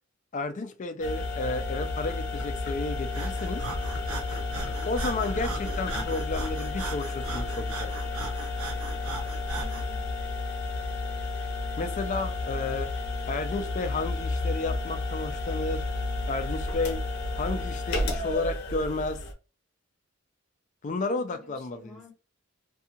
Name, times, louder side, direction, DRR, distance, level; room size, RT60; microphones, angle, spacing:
voice 1, 0.3-3.7 4.9-7.9 11.8-12.9 13.3-15.8 16.3-17.0 17.4-19.2 20.8-22.0, left 2 dB, 35° left, 0.4 m, -32 dB
sound 1, 1.0-19.3, left 3 dB, 50° left, 0.7 m, -32 dB
Breathing, 3.1-9.9, right 3 dB, 85° right, 0.6 m, -37 dB
voice 2, 9.5-10.1 21.0-22.1, left 4 dB, 5° left, 1.1 m, -50 dB
2.6 x 2.3 x 2.8 m
head